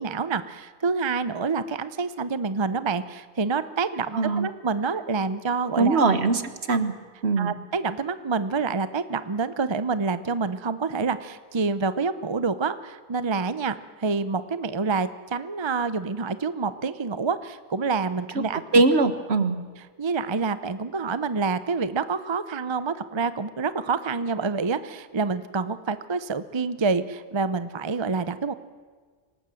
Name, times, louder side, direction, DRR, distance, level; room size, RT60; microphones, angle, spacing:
voice 1, 0.0-6.0 7.4-18.8 19.8-28.5, right 4 dB, 30° right, 13 dB, 0.7 m, -27 dB
voice 2, 4.1-4.5 5.8-6.9 7.2-7.5 18.7-19.6, right 3 dB, 65° right, 10 dB, 1.6 m, -21 dB
26.0 x 18.0 x 7.8 m, 1.5 s
omnidirectional pair, 1.2 m